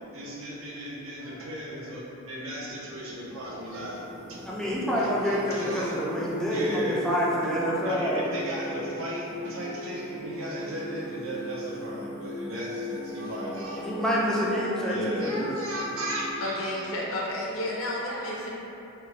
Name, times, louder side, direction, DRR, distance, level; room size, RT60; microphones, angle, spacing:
voice 1, 0.1-4.0 4.9-6.0 6.4-7.0 7.8-13.8 14.9-16.9 18.2-18.5, equal, 70° right, -4 dB, 0.6 m, -36 dB
Singing, 2.6-16.3, equal, 25° right, 0.7 m, -39 dB
voice 2, 4.5-8.2 13.8-15.5, equal, 5° left, -6 dB, 0.4 m, -27 dB
voice 3, 16.4-18.5, left 1 dB, 65° left, -5 dB, 0.6 m, -31 dB
3.2 x 2.1 x 3.2 m, 2.9 s
head